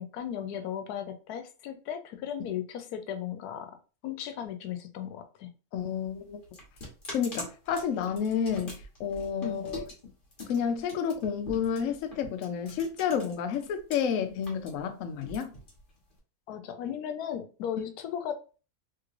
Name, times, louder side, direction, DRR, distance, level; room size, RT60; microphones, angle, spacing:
voice 1, 0.0-3.7 4.0-5.5 9.4-9.7 16.5-18.4, left 9 dB, 90° left, 1.1 m, -36 dB
voice 2, 5.7-6.4 7.1-9.9 10.5-15.5, left 7 dB, 70° left, 0.8 m, -30 dB
sound 1, 5.8-14.0 14.3-16.2, left 1 dB, 40° left, 1.2 m, -44 dB
3.2 x 3.0 x 2.4 m
omnidirectional pair, 1.6 m